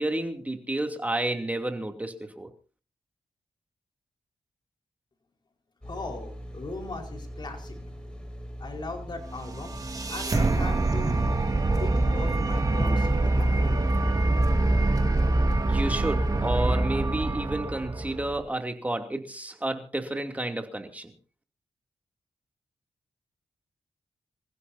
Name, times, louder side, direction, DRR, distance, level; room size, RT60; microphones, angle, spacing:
voice 1, 0.0-2.5 15.6-21.1, right 1 dB, 15° right, 5 dB, 2.8 m, -31 dB
voice 2, 5.8-7.8 8.6-9.8 10.1-11.2 11.7-13.7, left 3 dB, 45° left, 3 dB, 4.8 m, -39 dB
sound 1, 5.8-16.6, equal, 10° left, 5.9 m, -41 dB
sound 2, 9.3-18.4, right 2 dB, 35° right, 2.4 m, -25 dB
27.5 x 15.5 x 2.8 m, 0.35 s
wide cardioid pair, 90°, 11 cm